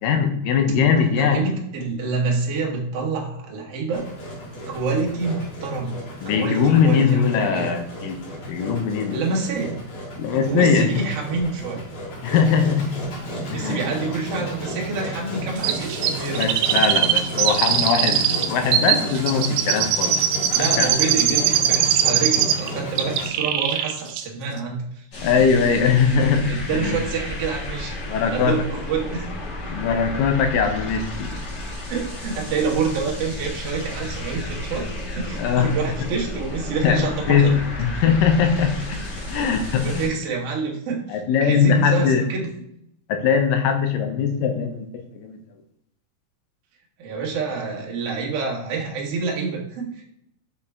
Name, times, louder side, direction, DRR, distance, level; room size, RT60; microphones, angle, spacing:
voice 1, 0.0-1.4 6.2-8.2 8.5-9.2 10.2-10.9 12.2-13.0 13.5-13.8 16.3-20.2 20.6-20.9 21.2-21.3 25.2-27.0 28.1-28.6 29.7-31.3 35.4-35.8 36.8-38.8 39.3-40.1 41.1-42.2 43.1-45.4, left 6 dB, 75° left, 5 dB, 2.3 m, -21 dB
voice 2, 1.1-4.1 4.7-6.0 6.3-7.7 9.1-9.8 10.5-11.8 13.5-16.5 20.5-25.0 26.5-28.0 28.3-29.3 29.6-29.7 31.9-37.6 37.9-38.1 39.3-42.5 47.0-50.0, right 4 dB, 50° right, -2 dB, 2.1 m, -27 dB
Engine, 3.9-23.3, equal, 60° left, 3.3 m, -33 dB
Chirp tweet, 15.6-22.7 23.0-23.9 24.2-24.3, right 9 dB, 90° right, 2.5 m, -21 dB
sound 1, 25.1-40.1, left 1 dB, 45° left, 1.2 m, -32 dB
6.6 x 4.9 x 3.5 m, 0.77 s
omnidirectional pair, 4.1 m